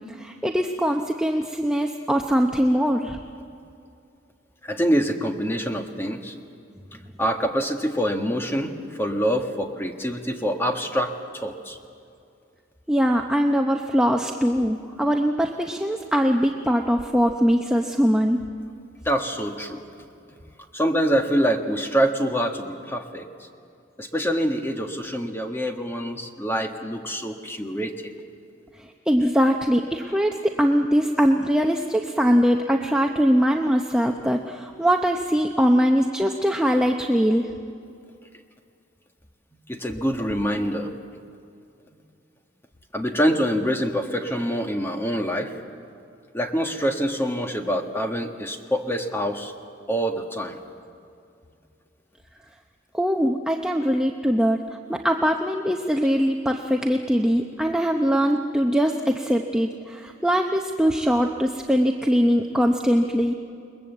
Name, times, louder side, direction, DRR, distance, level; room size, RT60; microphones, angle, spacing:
voice 1, 0.1-3.2 12.9-18.4 29.1-37.5 52.9-54.6 54.9-63.3, equal, 5° right, 2 dB, 0.8 m, -22 dB
voice 2, 4.6-6.3 7.2-11.8 19.0-19.8 20.7-23.3 24.0-27.9 39.7-40.9 42.9-45.5 46.3-49.5 49.9-50.6, equal, 10° left, 4 dB, 1.6 m, -25 dB
29.0 x 21.5 x 8.0 m, 2.4 s
head